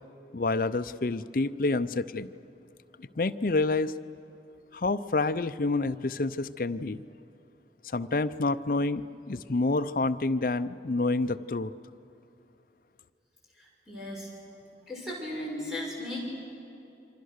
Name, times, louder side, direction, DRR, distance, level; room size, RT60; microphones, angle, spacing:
voice 1, 0.3-2.3 3.0-3.9 4.7-7.0 7.8-11.7, left 3 dB, 50° left, 10 dB, 0.6 m, -28 dB
voice 2, 13.6-14.3 14.8-16.2, left 1 dB, 5° right, -4 dB, 6.4 m, -36 dB
28.5 x 24.5 x 6.6 m, 2.7 s
head